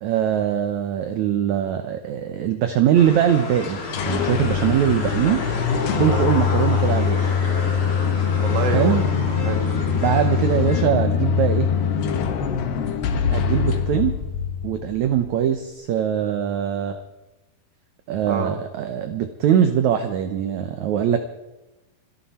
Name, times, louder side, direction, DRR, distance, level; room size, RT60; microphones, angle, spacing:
voice 1, 0.0-5.4 6.0-7.3 8.7-9.0 9.9-11.7 13.3-14.2 14.6-17.0 18.1-21.2, right 9 dB, 75° right, 8 dB, 1.7 m, -22 dB
sound 1, 2.9-10.8, left 3 dB, 30° left, 3.2 m, -31 dB
sound 2, 3.6-15.3, left 7 dB, 80° left, 3.4 m, -23 dB
voice 2, 8.4-9.0 9.3-9.6 13.4-13.8 18.3-18.5, right 3 dB, 40° right, 5 dB, 1.6 m, -27 dB
27.0 x 11.0 x 4.3 m, 1.0 s
omnidirectional pair, 4.5 m